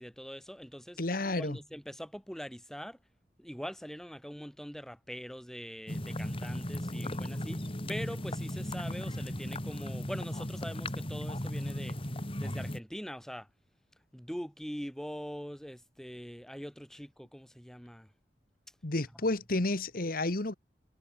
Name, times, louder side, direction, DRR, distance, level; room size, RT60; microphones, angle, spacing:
voice 1, 0.0-1.0 1.4-3.0 3.4-7.6 7.9-12.0 12.4-13.5 14.1-18.1, equal, 5° left, 2.4 m, -43 dB
voice 2, 1.0-1.6 18.8-20.5, left 2 dB, 55° left, 1.5 m, -31 dB
sound 1, 5.9-12.8, left 1 dB, 30° left, 3.3 m, -36 dB
head